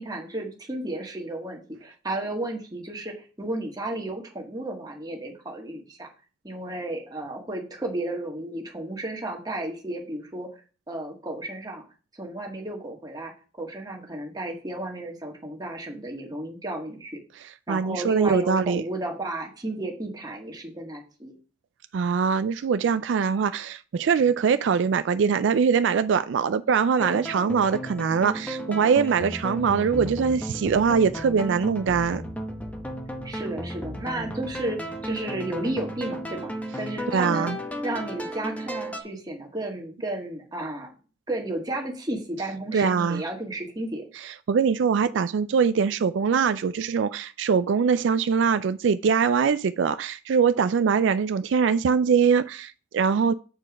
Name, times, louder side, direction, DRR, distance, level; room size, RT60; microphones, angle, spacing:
voice 1, 0.0-6.1 6.4-10.6 10.9-11.8 12.2-13.3 13.6-17.2 17.7-21.4 33.2-37.5 37.8-40.9 41.3-44.0, right 1 dB, 20° right, 1.6 m, -33 dB
voice 2, 17.7-18.8 21.9-32.2 37.1-37.6 42.7-43.2 44.1-53.3, right 6 dB, 75° right, 0.3 m, -22 dB
sound 1, 27.0-39.0, equal, 10° left, 0.9 m, -34 dB
7.7 x 4.5 x 6.0 m
head